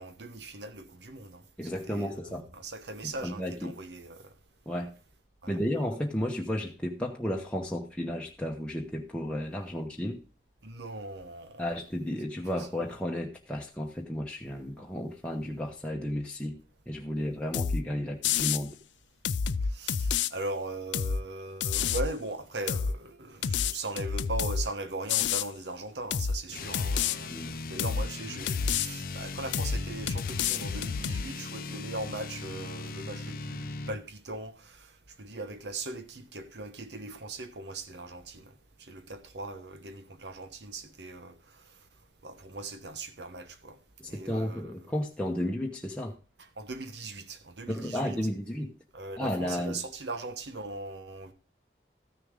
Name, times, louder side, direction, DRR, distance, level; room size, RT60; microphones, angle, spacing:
voice 1, 0.0-4.3 5.4-5.6 10.6-11.6 19.7-34.9 35.2-38.5 38.8-41.3 42.2-43.8 44.1-44.8 46.6-48.2 48.9-51.3, right 2 dB, 75° right, 1.1 m, -39 dB
voice 2, 1.6-2.4 3.0-3.8 4.7-4.9 5.5-10.2 11.6-18.8 27.3-27.6 44.0-46.2 47.7-48.7 49.2-49.8, equal, 5° left, 1.0 m, -33 dB
sound 1, 17.5-17.8 18.2-18.6 19.2-20.3 20.9-21.2 21.6-22.1 22.7-22.9 23.4-24.7 25.1-25.5 26.1-26.4 26.7-27.2 27.8-28.1 28.5-28.9 29.5-29.8 30.1-31.2, left 7 dB, 90° left, 0.5 m, -28 dB
sound 2, 26.5-34.0, left 3 dB, 50° left, 0.7 m, -39 dB
14.0 x 6.7 x 3.7 m
head